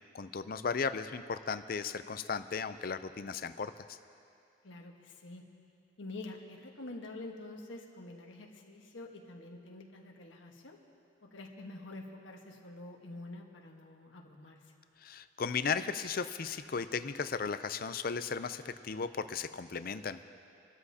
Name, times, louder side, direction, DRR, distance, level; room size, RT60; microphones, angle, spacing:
voice 1, 0.1-4.0 15.0-20.3, left 5 dB, 50° left, 11 dB, 0.5 m, -36 dB
voice 2, 4.6-5.4 6.0-10.8 11.3-14.6, left 2 dB, 90° left, 1 dB, 1.4 m, -47 dB
28.0 x 13.0 x 2.8 m, 2.5 s
head